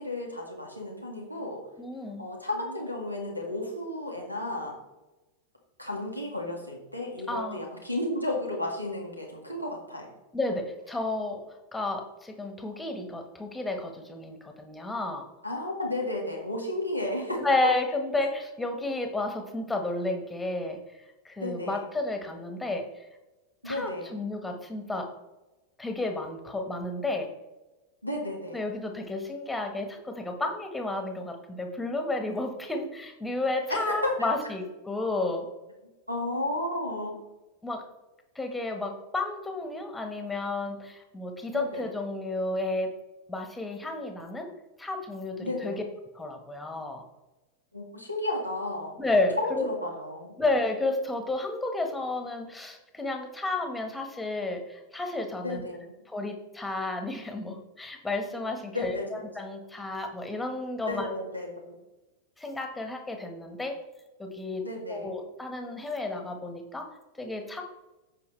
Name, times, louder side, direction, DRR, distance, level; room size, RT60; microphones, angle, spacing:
voice 1, 0.0-1.6 2.2-4.8 5.8-10.1 15.4-17.7 21.4-21.8 23.6-24.2 28.0-28.7 33.7-34.3 36.1-37.2 41.5-41.9 45.4-45.8 47.7-49.0 49.4-50.4 55.4-55.9 58.7-59.2 60.9-61.8 64.6-65.2, left 1 dB, 90° right, 1 dB, 2.1 m, -33 dB
voice 2, 1.8-2.3 7.3-7.6 10.3-11.4 11.7-15.2 17.4-20.8 21.2-22.9 23.6-25.1 25.8-27.3 28.5-35.5 37.6-37.8 38.3-42.9 43.3-44.5 44.8-45.8 46.1-47.0 49.0-49.7 50.4-55.6 56.1-61.1 62.4-63.8 64.2-64.6 64.9-66.9 67.2-67.6, left 2 dB, 5° left, 4 dB, 1.5 m, -32 dB
14.5 x 5.0 x 3.3 m, 1.1 s
figure-of-eight pair, 90°, 0 cm